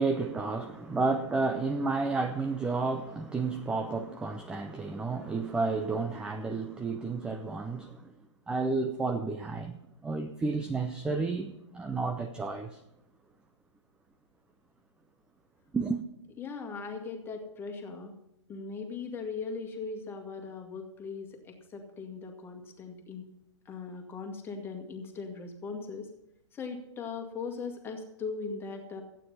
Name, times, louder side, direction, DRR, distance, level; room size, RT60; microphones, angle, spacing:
voice 1, 0.0-8.1 8.5-12.8 15.7-16.0, right 3 dB, 5° right, 0.5 m, -31 dB
voice 2, 16.4-18.1 18.5-23.3 23.7-26.1 26.5-29.0, left 4 dB, 15° left, 2.0 m, -39 dB
15.0 x 9.2 x 5.6 m
figure-of-eight pair, 115°, 16 cm